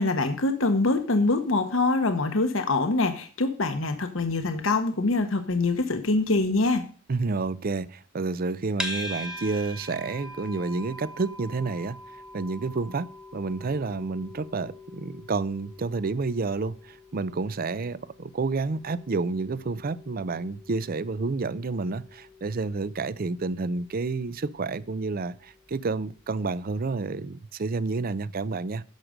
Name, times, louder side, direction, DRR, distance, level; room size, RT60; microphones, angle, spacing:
voice 1, 0.0-6.8, left 3 dB, 65° left, 1.0 m, -24 dB
voice 2, 7.1-12.0 12.3-28.8, right 3 dB, 45° right, 0.5 m, -30 dB
sound 1, 8.8-26.0, left 1 dB, 5° right, 1.3 m, -43 dB
10.5 x 6.6 x 5.1 m
head